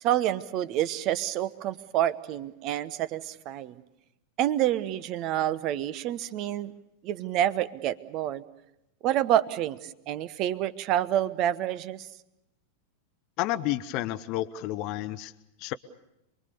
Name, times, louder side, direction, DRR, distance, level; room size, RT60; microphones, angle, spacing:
voice 1, 0.0-3.8 4.4-6.7 7.0-8.4 9.0-12.1, right 12 dB, 40° right, 16 dB, 1.0 m, -28 dB
voice 2, 13.4-15.3 15.6-15.7, left 15 dB, 40° left, 11 dB, 0.8 m, -30 dB
27.5 x 22.0 x 6.8 m, 0.87 s
figure-of-eight pair, 90°, 0 cm